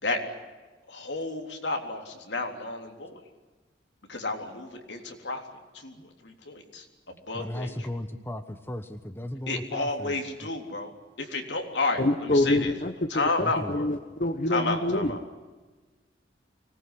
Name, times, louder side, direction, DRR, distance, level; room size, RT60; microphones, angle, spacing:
voice 1, 0.9-3.2 4.1-5.4 5.7-7.7 9.5-10.9 11.2-12.7 13.1-13.9 14.5-15.2, left 3 dB, 75° left, 4 dB, 3.5 m, -31 dB
voice 2, 7.3-10.5 13.4-13.7, left 1 dB, 15° left, 9 dB, 1.1 m, -36 dB
voice 3, 12.0-15.2, left 1 dB, 45° left, 8 dB, 1.1 m, -26 dB
25.0 x 19.5 x 9.9 m, 1.3 s
head